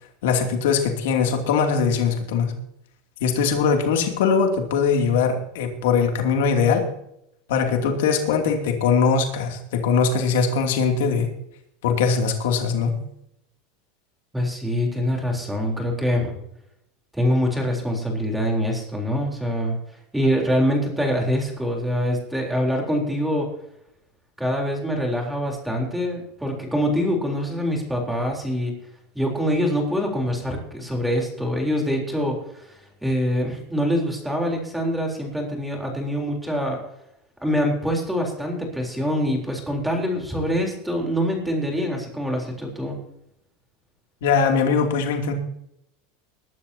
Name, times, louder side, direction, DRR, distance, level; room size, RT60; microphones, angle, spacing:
voice 1, 0.2-2.5 3.2-6.9 7.5-11.3 11.8-12.9 44.2-45.3, left 5 dB, 80° left, 3 dB, 2.8 m, -21 dB
voice 2, 14.3-16.4 17.1-19.8 20.1-23.5 24.4-28.8 29.1-36.8 37.4-43.0, equal, 5° right, 0 dB, 3.7 m, -24 dB
21.0 x 12.0 x 2.9 m, 0.78 s
supercardioid pair, 155°, 0 cm